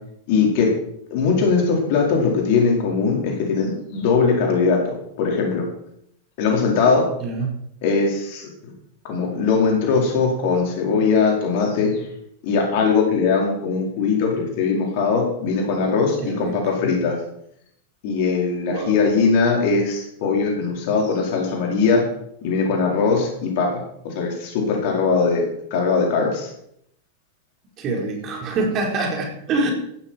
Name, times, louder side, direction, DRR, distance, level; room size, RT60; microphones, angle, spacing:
voice 1, 0.3-0.7 1.1-4.9 5.2-5.7 6.4-7.1 7.8-8.5 9.0-12.0 12.4-17.2 18.0-22.0 22.4-26.5, left 4 dB, 50° left, 0 dB, 4.7 m, -20 dB
voice 2, 7.2-7.6 16.2-16.6 18.7-19.0 27.8-29.7, right 3 dB, 35° right, 1 dB, 4.4 m, -25 dB
15.5 x 12.5 x 4.6 m, 0.73 s
figure-of-eight pair, 90°, 0 cm